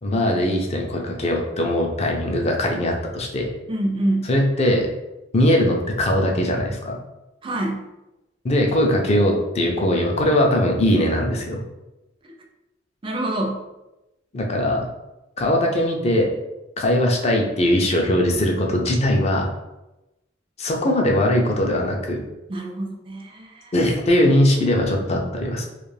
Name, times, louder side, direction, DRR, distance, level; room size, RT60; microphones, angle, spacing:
voice 1, 0.0-3.5 4.2-4.9 5.3-7.0 8.4-11.6 14.3-14.9 15.4-16.3 16.8-19.5 20.6-22.2 23.7-25.6, left 1 dB, 35° left, 1 dB, 0.5 m, -20 dB
voice 2, 3.7-4.3 7.4-7.8 13.0-13.6 22.5-23.7, right 1 dB, 25° right, 2 dB, 0.4 m, -26 dB
2.4 x 2.4 x 3.2 m, 0.97 s
head